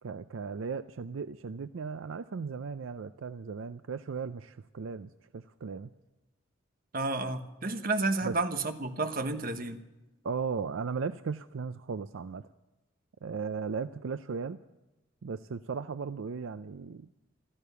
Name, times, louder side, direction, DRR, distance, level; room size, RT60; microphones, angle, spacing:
voice 1, 0.0-5.9 8.2-8.3 10.2-12.5 13.2-14.6 15.2-17.1, right 5 dB, 75° right, 12 dB, 0.5 m, -36 dB
voice 2, 6.9-9.8, right 3 dB, 45° right, 8 dB, 1.2 m, -31 dB
15.5 x 13.5 x 6.8 m, 1.0 s
head